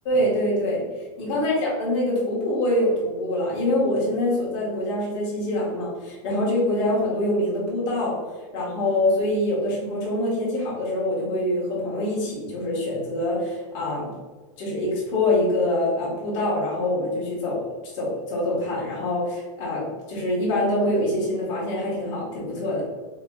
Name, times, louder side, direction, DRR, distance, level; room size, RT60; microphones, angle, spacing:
voice 1, 0.0-0.8 1.2-8.2 8.5-14.1 14.6-17.7 17.9-22.8, left 1 dB, 30° left, -6 dB, 1.3 m, -25 dB
4.1 x 2.9 x 2.3 m, 1.4 s
supercardioid pair, 175°, 17 cm